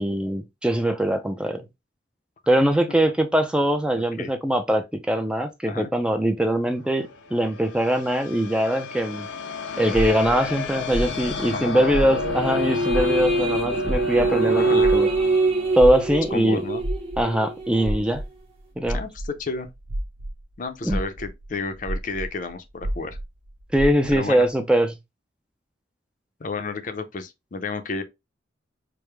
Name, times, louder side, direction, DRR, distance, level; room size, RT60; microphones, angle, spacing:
voice 1, 0.0-1.7 2.5-9.3 9.8-15.1 15.8-16.6 17.2-18.2 18.8-19.0 20.8-21.0 23.7-24.9, right 1 dB, 5° right, 0.4 m, -22 dB
voice 2, 4.0-4.3 5.6-5.9 11.5-11.9 14.5-14.9 16.3-16.8 18.9-19.7 20.6-23.2 24.1-24.5 26.4-28.0, left 3 dB, 45° left, 0.5 m, -31 dB
sound 1, 6.8-17.1, left 3 dB, 85° left, 0.6 m, -32 dB
sound 2, 9.9-12.6 12.8-20.4 20.8-24.3, right 1 dB, 80° right, 0.7 m, -31 dB
sound 3, 12.1-18.0, right 2 dB, 35° right, 0.8 m, -24 dB
4.7 x 2.1 x 3.2 m
head